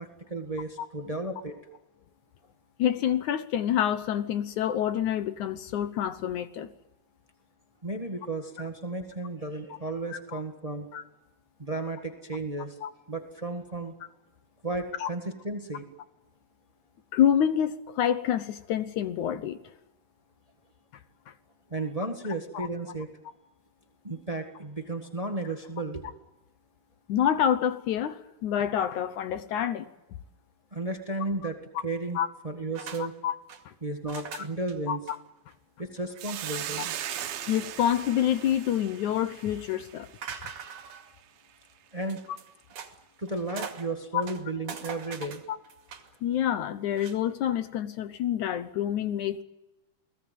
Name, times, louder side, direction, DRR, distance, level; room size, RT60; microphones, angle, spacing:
voice 1, 0.0-1.6 7.8-10.9 11.6-12.8 13.1-13.9 14.6-15.9 21.7-23.1 24.0-26.0 30.7-32.2 32.4-33.1 33.8-35.0 35.8-36.9 41.9-42.2 43.2-45.4, right 2 dB, 35° right, 5 dB, 0.6 m, -34 dB
voice 2, 2.8-6.7 10.1-10.4 10.9-11.0 12.8-12.9 15.0-15.1 17.1-19.6 22.5-22.7 27.1-29.9 32.2-32.3 33.2-33.3 33.7-33.8 34.9-35.2 37.5-40.1 40.4-40.5 44.1-44.2 46.2-49.4, left 10 dB, 70° left, 12 dB, 2.2 m, -27 dB
sound 1, 32.7-33.0 33.3-33.6 34.1-34.7 35.1-35.2 35.5-35.6 36.0-36.2 37.2-37.6 38.1-38.8 40.2-41.1 42.0-42.9 43.3-43.9 44.2-46.1 46.9-47.2, right 7 dB, 60° right, 3.6 m, -42 dB
Hiss, 36.2-40.7, right 11 dB, 85° right, 3.2 m, -38 dB
29.5 x 19.0 x 9.3 m, 0.98 s
omnidirectional pair, 4.1 m